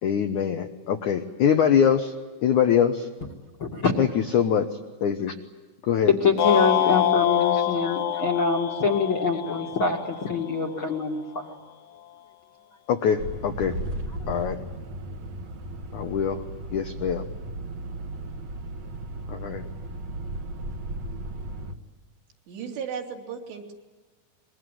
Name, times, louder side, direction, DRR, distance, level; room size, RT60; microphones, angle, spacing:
voice 1, 0.0-2.1 2.4-3.1 4.0-4.7 5.0-5.3 5.9-6.2 7.5-8.0 8.4-8.5 12.9-13.8 14.3-14.6 15.9-16.4 16.7-17.2 19.3-19.7, left 8 dB, 80° left, 6 dB, 1.7 m, -23 dB
voice 2, 3.6-3.9 6.0-11.5, left 4 dB, 40° left, 1 dB, 1.9 m, -24 dB
sound 1, 6.4-10.7, left 11 dB, 65° left, 1.6 m, -25 dB
sound 2, 13.2-21.7, right 1 dB, 55° right, 2.1 m, -35 dB
voice 3, 22.5-23.7, right 7 dB, 70° right, 1 dB, 5.0 m, -35 dB
26.0 x 22.5 x 9.3 m, 1.3 s
omnidirectional pair, 5.2 m